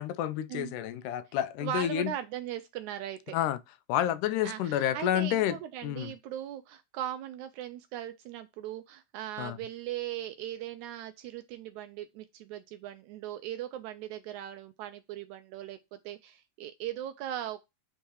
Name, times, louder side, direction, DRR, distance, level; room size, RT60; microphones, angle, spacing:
voice 1, 0.0-2.1 3.3-3.6 3.9-5.6 5.8-6.1 9.4-9.6, left 11 dB, 80° left, 2.0 m, -29 dB
voice 2, 1.6-3.4 4.4-17.6, right 12 dB, 80° right, 1.8 m, -39 dB
8.5 x 3.7 x 4.7 m
omnidirectional pair, 3.8 m